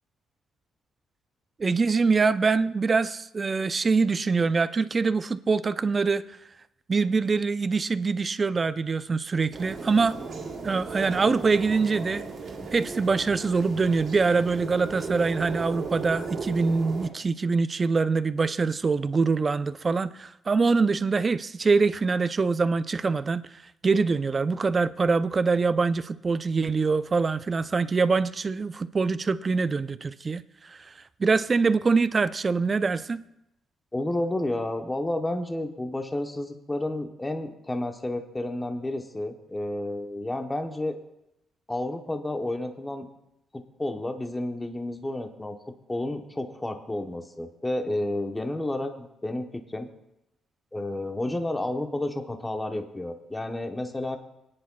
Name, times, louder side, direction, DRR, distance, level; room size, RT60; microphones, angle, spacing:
voice 1, 1.6-6.4 6.9-10.2 10.6-12.2 12.7-23.4 23.8-30.9 31.2-33.2, right 4 dB, 35° right, 0.5 m, -24 dB
sound 1, 9.5-17.1, right 4 dB, 60° right, 2.1 m, -36 dB
voice 2, 33.9-40.9 41.7-43.1 43.5-45.6 45.9-49.9 50.7-54.2, left 1 dB, 15° left, 1.0 m, -31 dB
25.5 x 9.8 x 2.3 m
cardioid pair, 90°, 0 cm